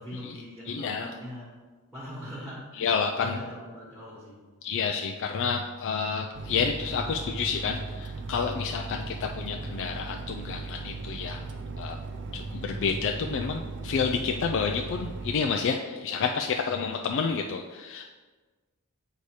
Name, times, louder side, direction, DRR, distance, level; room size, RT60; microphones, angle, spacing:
voice 1, 0.0-1.5 1.9-4.4, equal, ahead, -8 dB, 1.5 m, -41 dB
voice 2, 0.7-1.1 2.8-3.4 4.6-11.4 11.8-12.0 12.3-18.1, left 5 dB, 55° left, 3 dB, 0.3 m, -29 dB
sound 1, 6.3-15.4, right 3 dB, 55° right, 0.5 m, -37 dB
8.1 x 2.8 x 4.7 m, 1.4 s
head